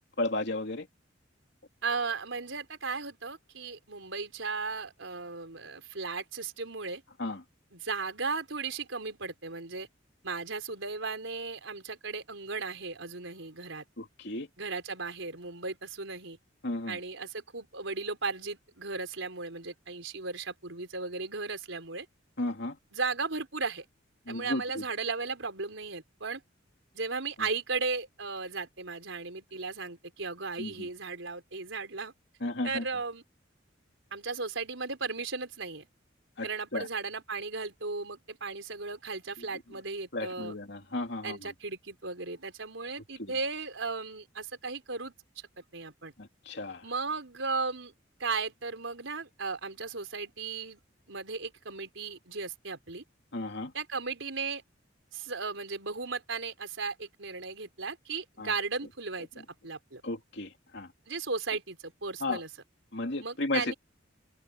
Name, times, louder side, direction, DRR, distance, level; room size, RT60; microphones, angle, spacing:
voice 1, 0.2-0.9 7.2-7.4 14.0-14.5 16.6-17.0 22.4-22.8 24.3-24.8 30.6-30.9 32.4-32.8 36.4-36.9 40.1-41.4 43.2-43.3 46.2-46.8 53.3-53.7 58.4-58.5 60.0-60.9 62.2-62.4 62.9-63.6, left 2 dB, 60° left, 3.0 m, -34 dB
voice 2, 1.8-7.0 7.7-9.9 10.2-13.8 14.6-16.4 16.9-22.1 22.9-23.8 24.3-26.4 26.9-32.1 32.6-33.2 34.1-35.9 36.4-40.6 41.2-45.1 45.6-46.1 46.8-47.9 48.2-50.8 51.1-53.0 53.7-54.6 55.1-60.0 61.1-62.5 63.2-63.7, right 4 dB, 85° right, 4.2 m, -36 dB
open air
head